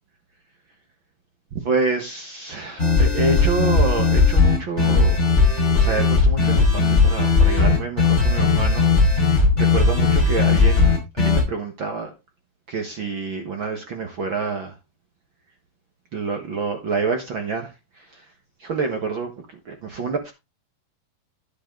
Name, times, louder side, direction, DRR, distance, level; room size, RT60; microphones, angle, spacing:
voice 1, 1.5-5.2 5.7-8.9 9.5-12.1 12.7-14.8 16.1-18.2 18.6-20.3, right 4 dB, 65° right, 1.2 m, -27 dB
sound 1, 2.8-11.4, left 4 dB, 15° left, 5.1 m, -17 dB
10.5 x 8.1 x 3.8 m
omnidirectional pair, 4.6 m